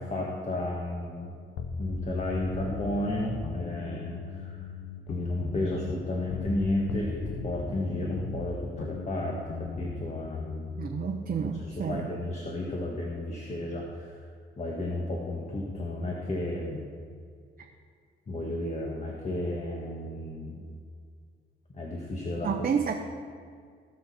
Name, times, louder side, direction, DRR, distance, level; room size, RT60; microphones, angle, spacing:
voice 1, 0.0-1.3 1.8-4.6 5.1-10.9 11.4-14.2 14.6-16.9 18.3-20.7 21.7-22.7, left 1 dB, 35° left, -2 dB, 1.7 m, -33 dB
sound 1, 1.6-6.6 6.9-11.7, left 4 dB, 80° left, 1.0 m, -38 dB
voice 2, 10.8-12.1 22.4-22.9, right 7 dB, 45° right, 2 dB, 0.9 m, -30 dB
18.0 x 6.5 x 4.3 m, 2.1 s
cardioid pair, 90°, 20 cm